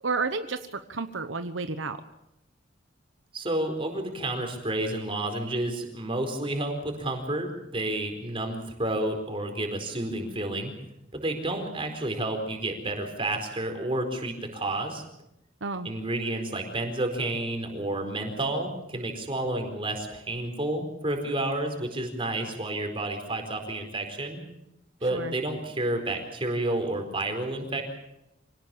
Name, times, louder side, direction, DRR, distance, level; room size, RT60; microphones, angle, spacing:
voice 1, 0.0-2.0 15.6-15.9 25.1-25.3, right 4 dB, 80° right, 9 dB, 1.1 m, -31 dB
voice 2, 3.3-10.7 11.1-15.0 15.8-24.4 25.0-27.8, right 1 dB, 30° right, 4 dB, 4.5 m, -30 dB
26.0 x 18.0 x 7.3 m, 0.85 s
head